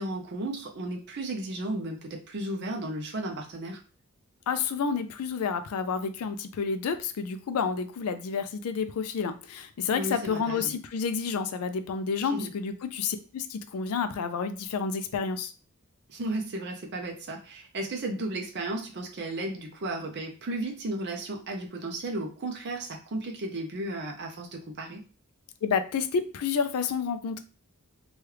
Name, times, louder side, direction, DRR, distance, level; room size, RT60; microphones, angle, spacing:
voice 1, 0.0-3.8 9.9-10.7 12.3-12.5 16.1-25.0, right 2 dB, 50° right, 1 dB, 0.6 m, -34 dB
voice 2, 4.5-15.5 25.6-27.4, left 6 dB, 85° left, 9 dB, 0.4 m, -30 dB
3.0 x 2.3 x 3.2 m, 0.37 s
head